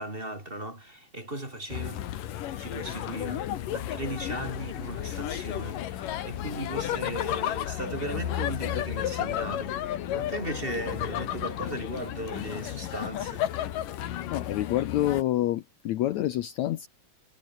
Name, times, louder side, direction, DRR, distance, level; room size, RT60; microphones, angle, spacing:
voice 1, 0.0-2.1 2.6-9.8 10.1-13.5, right 1 dB, 15° right, 4.0 m, -37 dB
sound 1, 1.7-15.2, left 11 dB, 65° left, 2.9 m, -33 dB
voice 2, 14.3-16.9, left 14 dB, 85° left, 1.6 m, -27 dB
omnidirectional pair, 4.6 m